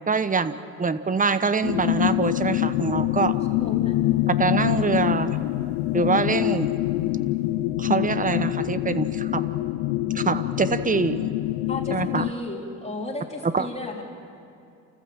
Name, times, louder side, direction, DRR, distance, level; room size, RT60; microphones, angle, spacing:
voice 1, 0.1-0.5 0.8-3.3 4.3-5.4 5.9-6.7 7.8-9.4 10.1-11.3 11.9-12.2 13.4-13.7, right 4 dB, 20° right, 13 dB, 1.0 m, -24 dB
sound 1, 1.6-12.3, left 15 dB, 75° left, 0.7 m, -25 dB
voice 2, 3.6-4.0 11.7-14.0, left 2 dB, 15° left, 0 dB, 4.0 m, -34 dB
29.5 x 14.5 x 7.4 m, 2.4 s
supercardioid pair, 85°, 42 cm